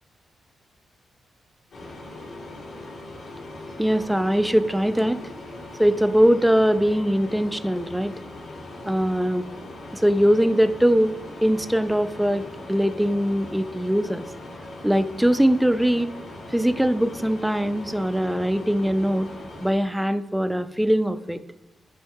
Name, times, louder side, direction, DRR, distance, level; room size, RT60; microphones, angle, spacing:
sound 1, 1.7-19.7, left 2 dB, 70° left, 3.0 m, -40 dB
voice 1, 3.8-5.2 5.8-8.1 8.8-9.5 9.9-11.1 11.4-14.2 14.8-16.1 16.5-19.3 19.6-21.4, equal, 5° right, 11 dB, 0.4 m, -21 dB
9.6 x 5.5 x 3.6 m, 1.1 s
cardioid pair, 120°, 0 cm